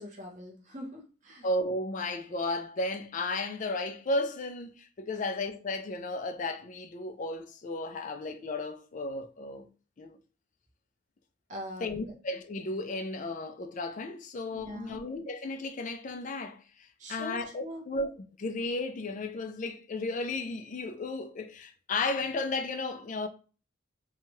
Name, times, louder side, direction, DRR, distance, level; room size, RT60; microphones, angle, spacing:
voice 1, 0.0-1.5 5.1-5.2 11.5-12.1 14.5-15.0 17.0-17.8, equal, 40° right, 0.8 m, -42 dB
voice 2, 1.4-9.7 10.0-10.2 11.8-18.1 18.4-23.3, left 2 dB, 40° left, 0.4 m, -34 dB
2.7 x 2.3 x 3.1 m
head